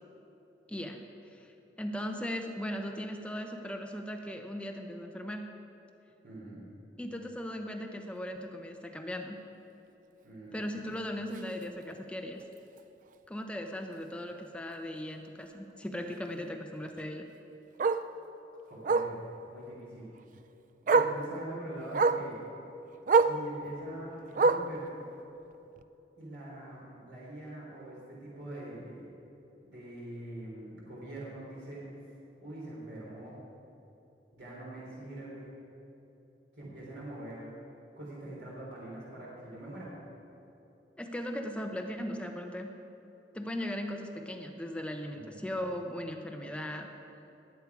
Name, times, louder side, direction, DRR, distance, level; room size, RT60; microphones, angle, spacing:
voice 1, 0.7-1.5 1.8-5.5 7.0-9.4 10.5-12.4 13.3-17.3 41.0-42.7 43.3-46.9, equal, 5° left, 4 dB, 0.7 m, -38 dB
voice 2, 6.2-6.6 10.2-10.6 18.7-20.1 20.8-22.4 23.2-25.0 26.1-29.1 29.6-31.8 32.4-33.4 34.3-35.5 36.6-37.6 38.0-39.9 45.1-45.4, right 1 dB, 75° right, -6 dB, 3.3 m, -44 dB
Bark, 11.3-11.5 11.9-12.0 12.4-12.5 12.8-12.9 14.3-14.4 16.9-17.0 17.8-18.1 18.8-19.2 20.3-20.4 20.9-21.2 21.9-22.3 23.1-23.4 24.3-24.8 25.8-25.9, right 4 dB, 50° right, 0.4 m, -25 dB
19.0 x 8.4 x 4.8 m, 3.0 s
head